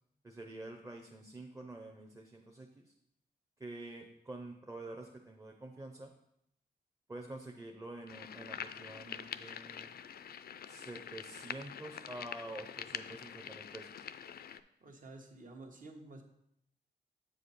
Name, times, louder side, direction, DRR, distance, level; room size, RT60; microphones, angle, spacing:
voice 1, 0.2-2.9 3.6-6.1 7.1-10.0 10.7-14.1, right 2 dB, 20° right, 2 dB, 0.8 m, -47 dB
sound 1, 8.1-14.6, left 8 dB, 65° left, 0.4 m, -45 dB
voice 2, 14.8-16.2, right 2 dB, 50° right, 3 dB, 1.4 m, -51 dB
7.6 x 5.0 x 4.2 m, 0.77 s
cardioid pair, 70°, 17 cm